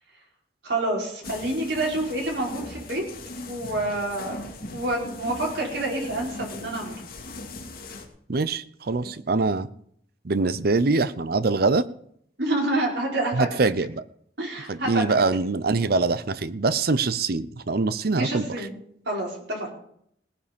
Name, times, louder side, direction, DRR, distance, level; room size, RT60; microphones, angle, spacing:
voice 1, 0.6-3.0 3.5-4.4 4.7-7.0 9.0-9.1 12.4-13.6 14.4-15.2 18.1-18.8 19.0-19.7, right 2 dB, 75° right, -2 dB, 4.9 m, -28 dB
sound 1, 1.2-8.1, left 2 dB, 55° left, 2.4 m, -39 dB
voice 2, 8.3-9.7 10.2-11.9 13.3-14.0 14.7-18.5, right 3 dB, 60° right, 15 dB, 0.7 m, -23 dB
18.0 x 9.7 x 5.3 m, 0.68 s
head